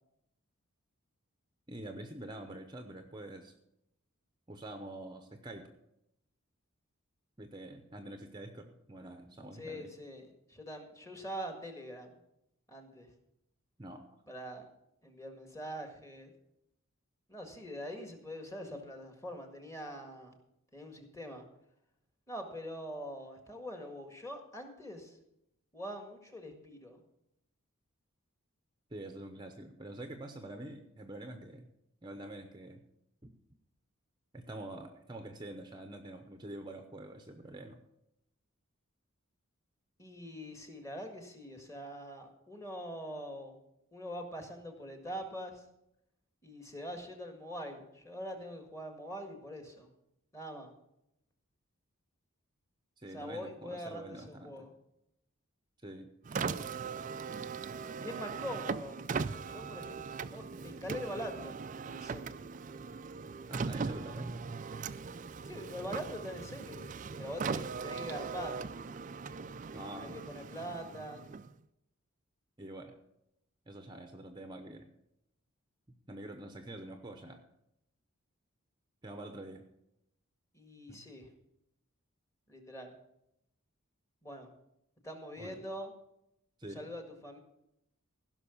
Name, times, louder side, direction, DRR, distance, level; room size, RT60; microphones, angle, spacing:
voice 1, 1.7-3.5 4.5-5.7 7.4-9.9 13.8-14.1 28.9-31.7 32.0-32.8 33.2-33.3 34.3-37.8 53.0-54.7 55.8-56.1 63.5-64.4 69.7-70.2 72.6-73.0 73.7-74.9 76.1-77.4 79.0-79.6 80.9-81.1 85.4-85.6 86.6-86.8, right 1 dB, 20° right, 6 dB, 0.8 m, -46 dB
voice 2, 9.5-12.1 12.7-13.1 14.3-14.6 15.0-16.3 17.3-20.4 20.7-21.4 22.3-25.2 25.7-27.0 40.0-43.6 43.9-45.6 46.4-49.9 50.3-50.7 53.1-54.7 58.0-59.0 59.5-60.0 60.3-62.4 65.4-66.9 67.2-68.6 70.0-71.2 80.5-81.3 82.5-82.9 84.2-84.5 85.0-85.9 86.6-87.4, equal, 15° left, 4 dB, 1.8 m, -43 dB
Car, 56.2-71.6, right 5 dB, 35° right, 0.4 m, -39 dB
16.0 x 6.0 x 7.1 m, 0.82 s
head